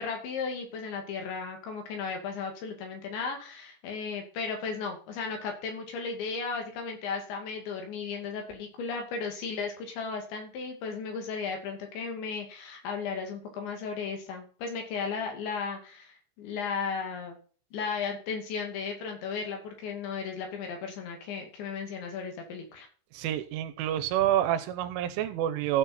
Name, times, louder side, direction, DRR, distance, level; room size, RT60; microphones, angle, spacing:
voice 1, 0.0-17.4 17.7-22.9, left 5 dB, 70° left, 3 dB, 4.5 m, -35 dB
voice 2, 23.1-25.8, right 11 dB, 80° right, 12 dB, 3.2 m, -28 dB
15.0 x 6.2 x 4.2 m, 0.40 s
omnidirectional pair, 5.6 m